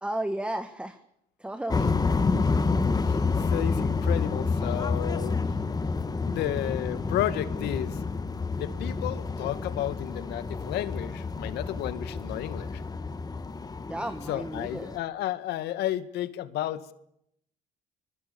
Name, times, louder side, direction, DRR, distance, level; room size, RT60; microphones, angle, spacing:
voice 1, 0.0-1.0 1.4-2.0 13.9-14.9, right 1 dB, 5° right, 9 dB, 1.6 m, -33 dB
sound 1, 1.7-15.0, left 4 dB, 20° left, 2.0 m, -29 dB
voice 2, 3.1-5.4 6.3-8.0 8.5-12.8 14.2-16.9, left 13 dB, 80° left, 13 dB, 2.1 m, -32 dB
25.0 x 22.0 x 7.0 m, 0.74 s
cardioid pair, 110°, 17 cm